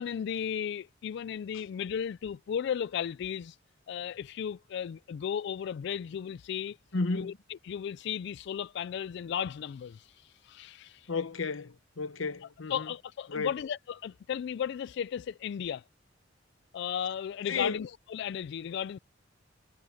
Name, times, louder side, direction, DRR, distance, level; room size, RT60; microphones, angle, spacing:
voice 1, 0.0-3.6 3.9-6.8 7.1-7.3 7.6-11.1 12.7-15.8 16.7-19.0, left 8 dB, 60° left, 0.3 m, -35 dB
voice 2, 6.9-7.4 11.1-12.9 13.3-13.5 17.5-17.9, left 4 dB, 85° left, 1.0 m, -33 dB
head